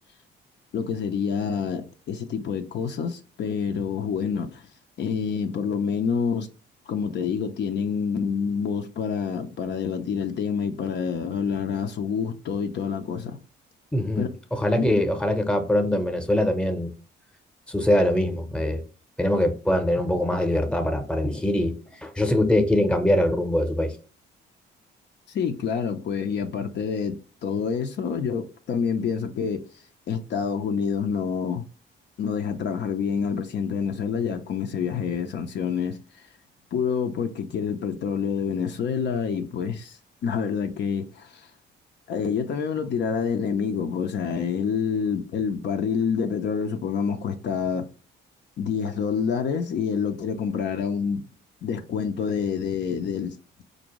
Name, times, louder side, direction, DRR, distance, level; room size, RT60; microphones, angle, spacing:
voice 1, 0.7-4.7 5.0-6.5 6.9-13.4 14.2-14.3 25.3-29.6 30.1-31.6 32.2-36.2 36.7-41.5 42.1-47.9 48.6-51.2 51.6-53.4, left 6 dB, 60° left, 0.6 m, -27 dB
voice 2, 13.9-16.9 17.7-18.8 19.2-21.7 22.0-23.9, left 1 dB, 5° left, 0.8 m, -23 dB
4.3 x 2.6 x 3.0 m
cardioid pair, 90°, 20 cm